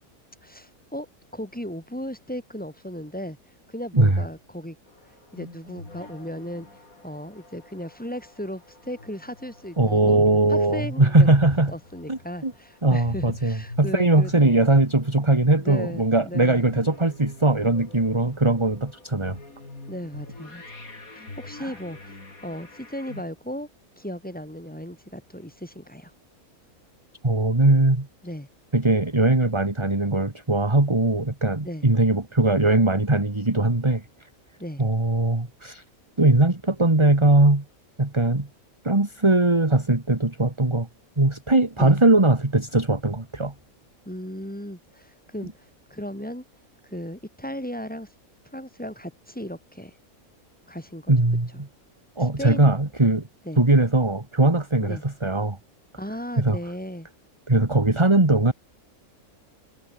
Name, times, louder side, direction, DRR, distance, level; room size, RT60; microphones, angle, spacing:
voice 1, 0.4-1.1 1.3-3.4 3.7-4.8 5.3-6.7 7.0-10.2 10.5-11.3 11.7-14.7 15.6-16.7 19.9-20.8 21.1-22.2 22.4-23.7 24.0-26.1 28.2-28.5 31.6-31.9 34.6-34.8 41.8-42.0 44.0-46.4 46.8-48.1 48.5-49.9 50.7-51.1 52.2-52.7 53.4-53.6 54.8-55.0 56.0-57.1, equal, 5° left, 4.7 m, -36 dB
sound 1, 4.9-23.2, left 2 dB, 70° left, 5.3 m, -44 dB
voice 2, 9.8-11.7 12.1-12.5 12.8-19.4 21.6-21.7 27.2-28.1 28.7-34.0 34.8-35.8 36.2-37.6 38.0-38.5 38.8-40.9 41.2-43.5 51.1-51.7 52.2-53.2 53.6-55.6 56.4-56.6 57.5-58.5, right 2 dB, 20° right, 2.2 m, -20 dB
omnidirectional pair, 1.5 m